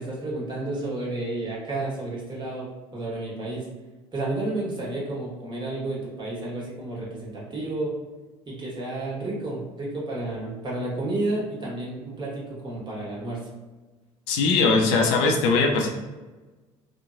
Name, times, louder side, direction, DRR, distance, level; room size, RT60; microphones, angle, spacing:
voice 1, 0.0-3.7 4.1-7.9 8.4-13.4, right 2 dB, 25° right, -5 dB, 1.2 m, -31 dB
voice 2, 14.3-15.9, left 4 dB, 75° left, 1 dB, 0.5 m, -20 dB
3.0 x 2.1 x 2.5 m, 1.2 s
hypercardioid pair, 65°, 16 cm